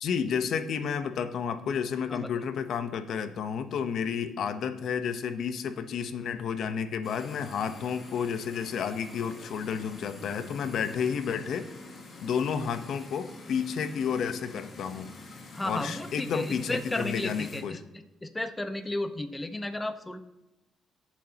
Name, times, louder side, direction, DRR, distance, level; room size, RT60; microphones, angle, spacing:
voice 1, 0.0-11.7 12.2-15.1 15.7-17.8, left 7 dB, 70° left, 10 dB, 0.9 m, -31 dB
voice 2, 2.1-2.4 15.5-17.8 18.2-20.2, left 1 dB, 15° left, 8 dB, 1.1 m, -33 dB
sound 1, 7.0-17.6, left 2 dB, 45° left, 3.1 m, -47 dB
18.5 x 7.3 x 2.9 m, 0.97 s
cardioid pair, 90°, 0 cm